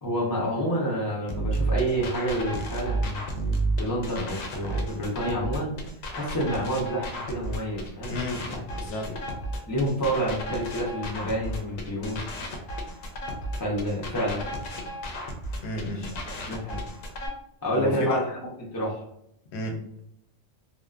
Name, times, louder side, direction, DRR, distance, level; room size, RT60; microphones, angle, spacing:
voice 1, 0.0-3.3 3.8-5.7 6.1-8.1 8.5-8.6 8.9-9.0 9.7-12.2 13.6-14.5 15.9-16.1 16.5-16.8 17.6-18.2 18.7-19.0, right 1 dB, 35° left, -4 dB, 0.3 m, -28 dB
sound 1, 1.3-17.3, right 1 dB, 90° left, 1.0 m, -32 dB
voice 2, 8.1-9.1 15.6-16.1 17.7-18.2 19.5-19.8, left 2 dB, 65° left, 3 dB, 0.8 m, -30 dB
2.6 x 2.1 x 2.3 m, 0.76 s
omnidirectional pair, 1.3 m